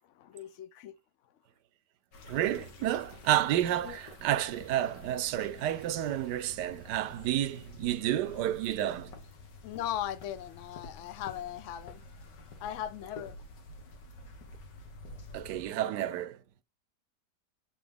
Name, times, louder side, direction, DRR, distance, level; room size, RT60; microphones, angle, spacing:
voice 1, 0.1-1.0 3.8-4.0 9.6-12.0 12.6-13.4, left 11 dB, 60° left, 0.8 m, -38 dB
sound 1, 2.1-15.7, left 2 dB, 85° left, 2.1 m, -50 dB
voice 2, 2.3-9.2 15.3-16.4, right 12 dB, 80° right, 1.2 m, -30 dB
8.6 x 4.0 x 5.1 m
omnidirectional pair, 1.8 m